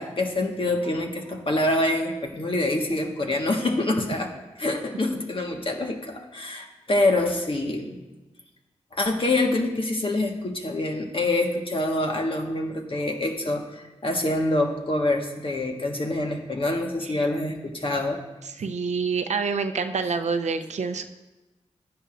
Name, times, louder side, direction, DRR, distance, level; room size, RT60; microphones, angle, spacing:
voice 1, 0.0-4.3 4.6-8.0 8.9-18.2, left 2 dB, 45° left, 2 dB, 1.5 m, -26 dB
voice 2, 18.6-21.0, right 5 dB, 70° right, 8 dB, 0.6 m, -27 dB
13.0 x 10.0 x 2.6 m, 1.1 s
cardioid pair, 40°, 12 cm